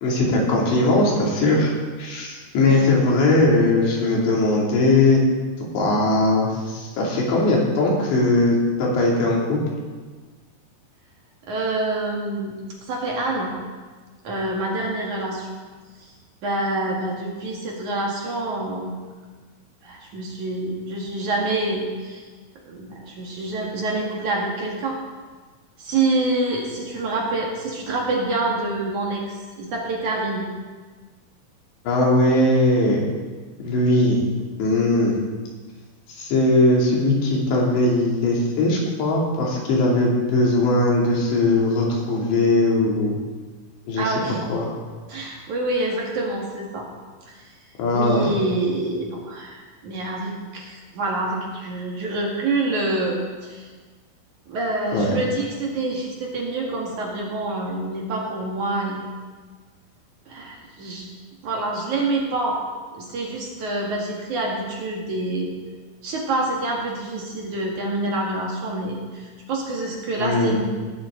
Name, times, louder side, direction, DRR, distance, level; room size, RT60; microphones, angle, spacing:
voice 1, 0.0-1.7 2.0-5.2 5.7-9.6 31.8-33.0 33.6-34.2 34.6-35.2 36.1-43.2 43.9-44.1 44.5-44.7 47.8-48.2 54.9-55.1 70.2-70.6, left 2 dB, 90° left, -3 dB, 5.0 m, -19 dB
voice 2, 11.5-12.6 12.9-13.6 14.2-15.5 16.0-16.1 16.4-18.9 19.8-22.3 22.7-25.0 25.8-30.5 44.0-44.4 45.1-46.9 47.3-47.4 47.9-53.7 54.5-59.1 60.3-61.1 61.4-62.6 62.9-65.5 66.0-70.6, right 2 dB, 55° right, -2 dB, 2.8 m, -26 dB
19.5 x 11.5 x 3.8 m, 1.4 s
omnidirectional pair, 4.9 m